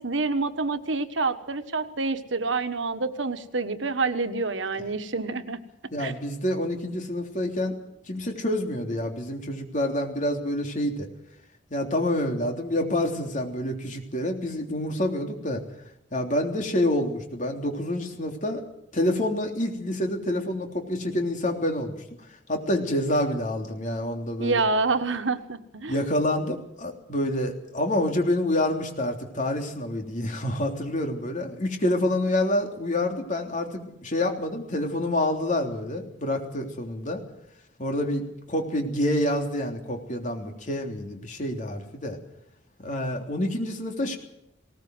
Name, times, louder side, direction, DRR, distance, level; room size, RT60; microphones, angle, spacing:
voice 1, 0.0-5.6 6.0-6.1 24.4-26.0, right 3 dB, 85° right, 10 dB, 1.4 m, -27 dB
voice 2, 5.9-7.8 8.1-11.1 11.7-15.6 16.1-18.6 18.9-22.0 22.5-24.6 25.9-37.2 37.8-42.2 42.8-44.2, left 1 dB, 45° left, 3 dB, 3.3 m, -27 dB
20.0 x 18.5 x 7.9 m, 0.79 s
head